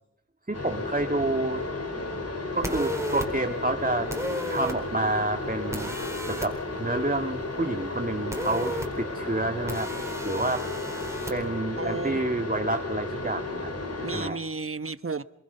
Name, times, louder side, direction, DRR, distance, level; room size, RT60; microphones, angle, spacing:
sound 1, 0.5-14.3, left 2 dB, 50° left, 4.3 m, -33 dB
voice 1, 0.5-1.6 2.5-4.1 4.5-5.9 6.3-9.9 10.2-10.6 11.3-13.7 14.1-14.4, right 2 dB, 25° right, 1.8 m, -29 dB
sound 2, 2.6-3.3 4.1-4.8 5.7-6.5 8.3-8.9 9.7-11.3, equal, 10° right, 4.5 m, -33 dB
voice 2, 11.8-12.2 13.9-15.2, right 4 dB, 45° right, 1.1 m, -33 dB
27.0 x 22.5 x 5.6 m
wide cardioid pair, 55°, 31 cm